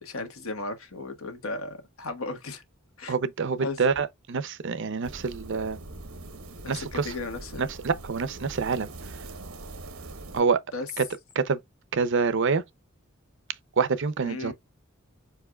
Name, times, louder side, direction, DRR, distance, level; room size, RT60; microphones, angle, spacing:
voice 1, 0.0-2.6 3.0-3.1 3.6-3.8 6.7-7.6 10.7-10.9 14.2-14.5, left 3 dB, 80° left, 1.4 m, -35 dB
voice 2, 3.1-5.8 6.7-7.1 7.6-9.2 10.3-10.6 11.0-11.1 11.3-11.6 11.9-12.6 13.8-14.5, right 5 dB, 60° right, 0.6 m, -26 dB
sound 1, 5.0-10.4, right 2 dB, 90° right, 1.0 m, -42 dB
4.8 x 4.7 x 2.3 m
head